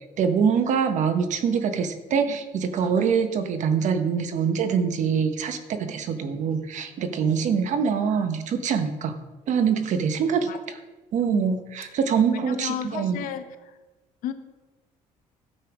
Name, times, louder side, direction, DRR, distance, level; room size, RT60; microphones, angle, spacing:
voice 1, 0.2-9.1 9.5-10.8 11.1-13.2, right 6 dB, 60° right, 8 dB, 1.2 m, -24 dB
voice 2, 11.3-12.0 12.4-13.8 14.2-14.3, left 9 dB, 80° left, 9 dB, 1.0 m, -34 dB
13.0 x 6.7 x 5.0 m, 1.2 s
cardioid pair, 105°, 14 cm